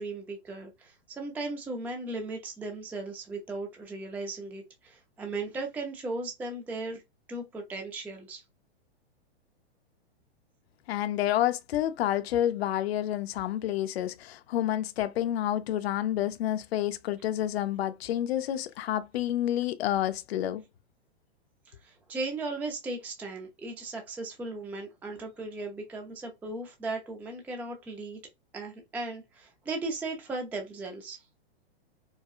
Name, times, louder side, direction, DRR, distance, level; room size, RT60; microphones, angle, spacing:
voice 1, 0.0-7.0 7.3-8.4 21.7-28.2 28.5-31.2, right 2 dB, 5° right, 0.4 m, -37 dB
voice 2, 10.9-20.6, left 12 dB, 70° left, 0.5 m, -29 dB
4.7 x 2.2 x 2.4 m
hypercardioid pair, 130°, 32 cm